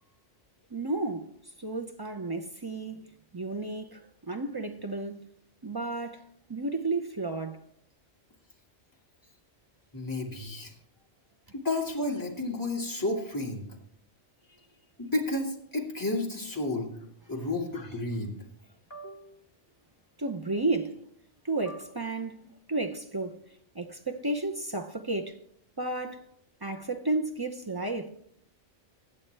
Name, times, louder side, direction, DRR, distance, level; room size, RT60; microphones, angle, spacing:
voice 1, 0.7-1.3 1.6-3.1 3.3-5.2 5.6-7.6 20.2-21.0 21.4-25.4 25.8-26.3 26.6-28.1, right 2 dB, 30° right, 0.4 m, -32 dB
voice 2, 9.9-10.7 11.5-13.7 15.0-16.9 17.3-18.3 18.9-19.3 21.7-21.8, left 2 dB, 15° left, 1.9 m, -32 dB
21.5 x 8.1 x 3.3 m
omnidirectional pair, 1.2 m